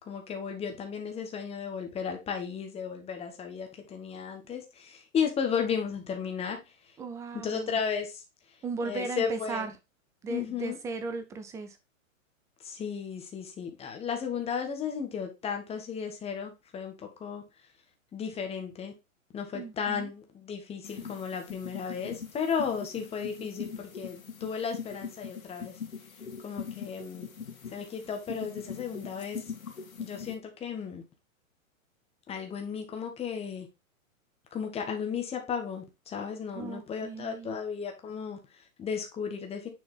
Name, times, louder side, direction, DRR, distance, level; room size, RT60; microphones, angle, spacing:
voice 1, 0.1-6.6 6.8-6.9 7.3-8.2 8.8-9.7 10.3-10.8 12.6-17.4 18.1-18.9 19.3-25.8 26.4-27.3 27.7-29.4 30.0-31.0 32.3-33.7 34.5-39.7, left 7 dB, 15° left, 1.4 m, -34 dB
voice 2, 7.0-7.8 8.6-9.7 10.2-11.8 19.5-20.1 36.5-37.6, right 4 dB, 10° right, 0.4 m, -36 dB
sound 1, 20.8-30.3, left 6 dB, 85° left, 2.1 m, -42 dB
6.9 x 4.2 x 3.7 m
hypercardioid pair, 135°, 40 cm